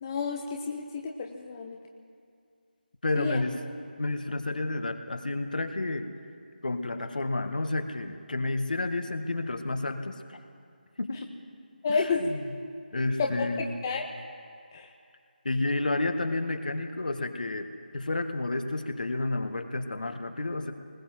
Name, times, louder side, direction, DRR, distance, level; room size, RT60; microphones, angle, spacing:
voice 1, 0.0-1.8 3.1-3.4 11.8-12.3 13.2-13.3 13.6-14.0 14.7-14.9, left 5 dB, 20° left, 2 dB, 0.8 m, -30 dB
voice 2, 3.0-3.5 4.0-6.1 6.6-10.4 11.0-11.3 11.9-12.4 12.9-13.7 15.4-17.7 17.9-20.7, left 2 dB, 55° left, 7 dB, 1.6 m, -30 dB
20.0 x 18.0 x 7.5 m, 2.3 s
figure-of-eight pair, 160°, 5 cm